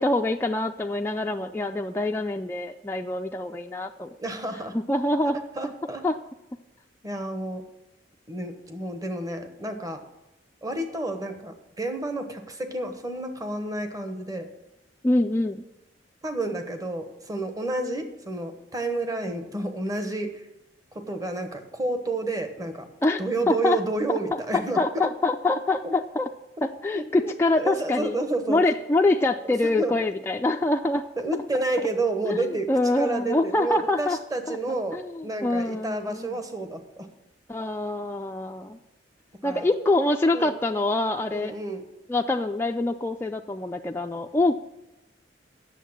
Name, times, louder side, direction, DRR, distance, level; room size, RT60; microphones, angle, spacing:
voice 1, 0.0-4.1 4.7-5.4 6.0-6.2 15.0-15.6 23.0-23.8 24.1-24.2 24.5-26.3 26.6-28.2 28.5-31.1 32.2-34.2 34.5-34.6 34.9-36.4 37.5-38.8 39.4-41.5 42.1-44.6, left 2 dB, 15° left, 3 dB, 0.3 m, -25 dB
voice 2, 4.2-4.8 5.3-6.0 7.0-7.6 8.3-10.0 10.6-14.5 16.2-20.4 20.9-22.9 23.2-24.8 25.8-25.9 26.9-28.6 29.6-29.9 31.2-32.7 33.0-37.1 39.4-39.7 40.3-40.5 41.3-41.8, right 2 dB, 20° right, 7 dB, 1.0 m, -30 dB
8.4 x 6.9 x 7.3 m, 0.97 s
head